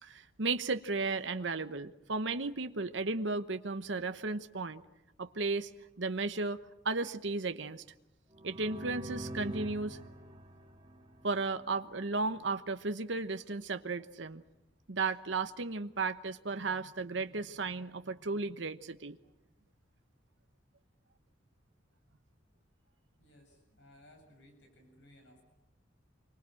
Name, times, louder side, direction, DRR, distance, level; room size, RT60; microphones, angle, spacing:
voice 1, 0.0-4.8 5.2-5.7 6.0-7.8 8.4-10.0 11.2-14.4 14.9-19.2, right 3 dB, 70° right, 9 dB, 1.0 m, -34 dB
sound 1, 8.3-12.0, right 1 dB, 25° right, 2.5 m, -45 dB
voice 2, 22.8-25.4, left 1 dB, 70° left, 4 dB, 7.2 m, -61 dB
27.0 x 24.0 x 7.7 m, 0.94 s
head